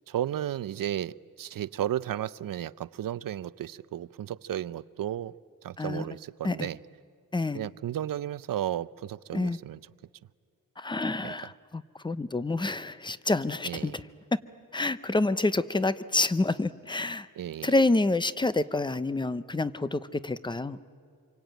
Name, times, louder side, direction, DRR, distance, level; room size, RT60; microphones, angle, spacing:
voice 1, 0.1-5.3 5.6-6.8 7.5-9.8 11.2-11.3 13.6-14.0 17.3-17.8, right 11 dB, 75° right, 18 dB, 0.6 m, -33 dB
voice 2, 10.8-13.9 14.7-17.3 17.6-20.8, left 2 dB, 15° left, 15 dB, 0.6 m, -28 dB
27.0 x 24.0 x 9.1 m, 2.3 s
wide cardioid pair, 160°, 34 cm